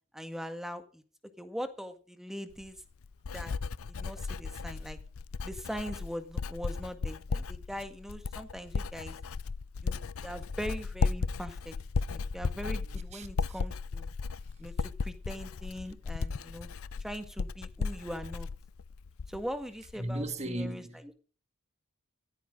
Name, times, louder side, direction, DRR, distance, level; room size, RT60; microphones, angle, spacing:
voice 1, 0.1-1.0 1.4-2.8 3.3-3.5 3.9-5.0 5.4-9.1 9.8-11.8 12.1-14.1 14.6-16.7 17.0-18.5 19.3-21.2, equal, ahead, 1.8 m, -41 dB
Writing, 2.5-19.6 19.9-20.3, left 4 dB, 75° left, 0.5 m, -35 dB
voice 2, 19.9-21.0, right 1 dB, 30° right, 1.9 m, -35 dB
14.5 x 14.0 x 3.8 m
head